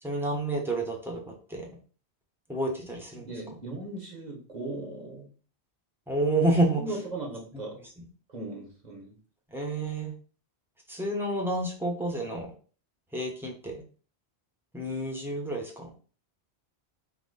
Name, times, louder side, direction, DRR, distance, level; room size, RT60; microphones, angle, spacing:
voice 1, 0.0-1.7 2.5-3.3 6.1-6.8 8.0-8.1 9.5-10.1 10.9-12.5 13.1-13.8 14.7-15.9, right 1 dB, ahead, -1 dB, 1.0 m, -29 dB
voice 2, 3.2-5.3 6.8-7.8 8.3-9.1, right 2 dB, 40° right, 0 dB, 1.3 m, -38 dB
3.7 x 2.9 x 4.0 m, 0.40 s
omnidirectional pair, 1.1 m